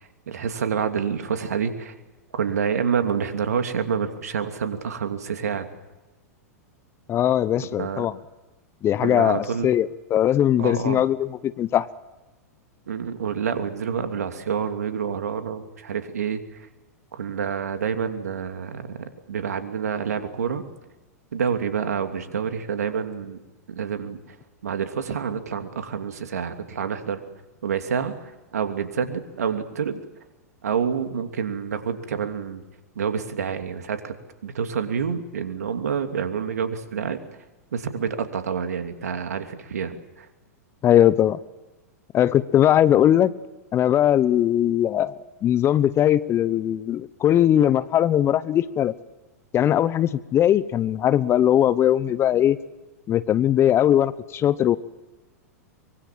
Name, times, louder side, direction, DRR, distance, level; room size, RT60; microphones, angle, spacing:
voice 1, 0.0-1.9 2.3-5.7 7.8-8.1 9.0-9.7 10.6-11.1 12.9-16.7 17.1-20.6 21.3-23.4 23.7-24.4 24.6-27.2 27.6-30.0 30.6-32.6 32.9-34.1 34.4-37.2 37.7-40.3, right 7 dB, 75° right, 7 dB, 2.8 m, -28 dB
voice 2, 7.1-8.1 8.8-11.9 40.8-41.4 42.1-43.3 43.7-45.2 45.4-48.9 49.5-52.6 53.1-54.8, left 11 dB, 30° left, 17 dB, 1.0 m, -20 dB
24.0 x 24.0 x 7.6 m, 1.1 s
hypercardioid pair, 105°, 9 cm